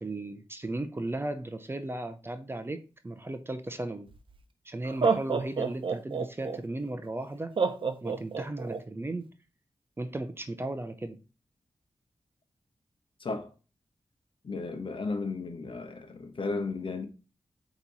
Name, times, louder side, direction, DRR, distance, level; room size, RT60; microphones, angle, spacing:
voice 1, 0.0-4.1 4.6-7.5 8.0-9.3 10.0-11.2, right 2 dB, 25° right, 0.6 m, -36 dB
Laughter, 4.1-4.2 4.8-6.6 7.6-8.8, right 5 dB, 55° right, 0.7 m, -28 dB
voice 2, 13.2-13.5 14.4-17.1, left 3 dB, 60° left, 1.0 m, -34 dB
8.2 x 3.0 x 4.0 m
wide cardioid pair, 125°, 10 cm